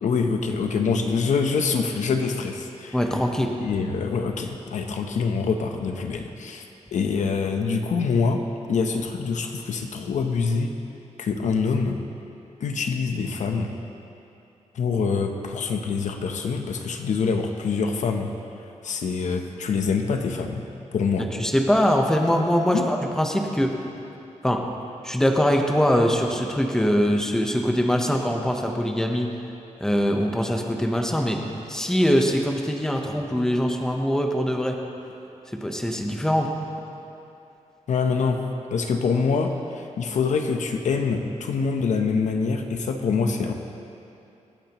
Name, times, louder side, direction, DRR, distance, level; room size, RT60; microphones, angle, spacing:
voice 1, 0.0-3.0 3.6-8.4 8.7-10.7 11.2-12.0 12.6-13.7 14.7-18.3 18.8-21.3 22.7-22.8 37.9-38.4 38.7-43.5, left 5 dB, 75° left, 4 dB, 0.8 m, -25 dB
voice 2, 2.9-3.5 21.4-23.7 24.4-24.6 25.0-29.3 29.8-31.4 31.7-34.8 35.5-36.5, equal, 5° left, 2 dB, 0.9 m, -22 dB
25.5 x 8.8 x 3.0 m, 2.8 s
wide cardioid pair, 165°, 13 cm